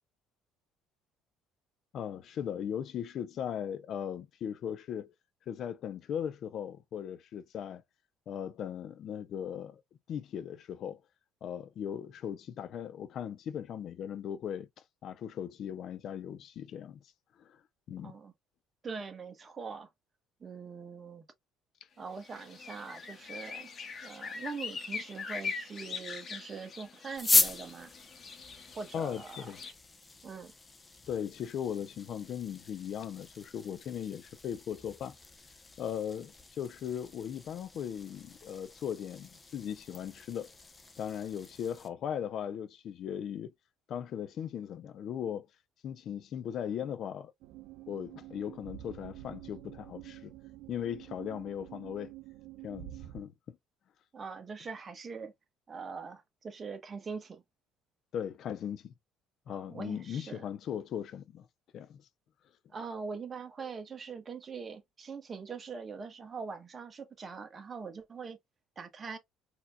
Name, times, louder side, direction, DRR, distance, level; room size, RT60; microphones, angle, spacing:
voice 1, 1.9-5.1 5.5-7.8 8.3-9.8 10.1-11.0 11.4-14.7 15.0-17.0 17.4-17.6 17.9-18.1 28.9-29.6 31.1-35.2 35.8-40.5 41.0-43.5 43.9-45.5 45.8-47.3 47.9-50.3 50.7-52.1 52.6-53.6 58.1-58.9 59.5-61.5 61.7-62.0, left 9 dB, 55° left, 0.6 m, -38 dB
voice 2, 18.0-18.3 18.8-19.9 20.4-21.2 22.0-23.7 24.0-27.9 28.8-29.5 30.2-30.5 54.1-55.3 55.7-57.4 59.5-60.4 62.7-68.4 68.8-69.2, right 5 dB, 30° right, 1.2 m, -42 dB
sound 1, 22.2-29.7, left 5 dB, 35° left, 1.1 m, -42 dB
sound 2, 27.1-41.9, left 3 dB, 20° left, 0.7 m, -37 dB
sound 3, 47.4-53.2, right 14 dB, 70° right, 0.4 m, -48 dB
4.2 x 2.8 x 2.3 m
cardioid pair, 110°, 0 cm